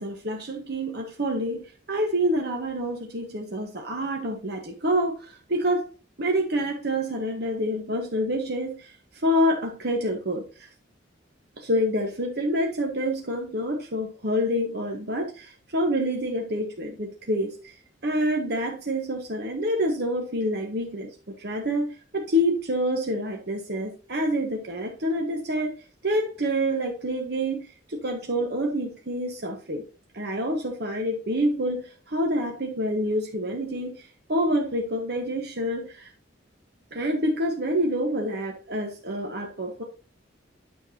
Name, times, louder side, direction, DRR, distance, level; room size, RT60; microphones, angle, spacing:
voice 1, 0.0-5.2 5.5-5.9 6.2-8.9 9.2-10.7 11.6-17.7 18.0-21.1 21.4-25.7 26.0-29.8 30.1-34.0 34.3-36.1 36.9-39.8, equal, 60° right, 2 dB, 1.3 m, -27 dB
9.4 x 7.0 x 2.8 m, 0.34 s
head